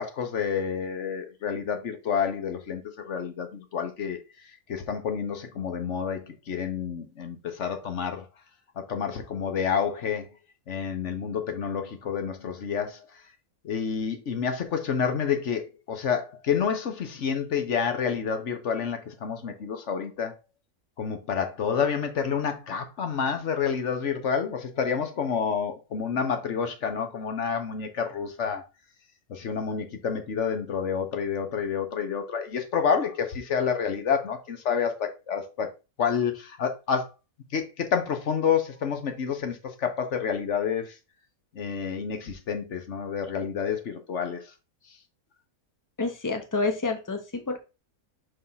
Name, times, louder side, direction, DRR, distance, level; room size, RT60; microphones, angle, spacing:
voice 1, 0.0-4.2 4.7-6.2 6.5-8.2 8.9-10.2 10.7-13.0 13.6-20.3 21.0-28.6 29.3-35.7 36.0-37.1 37.5-40.8 41.6-44.4, left 7 dB, 55° left, 1.3 m, -29 dB
voice 2, 46.0-47.6, left 3 dB, 15° left, 0.8 m, -28 dB
5.6 x 3.6 x 5.6 m
omnidirectional pair, 1.6 m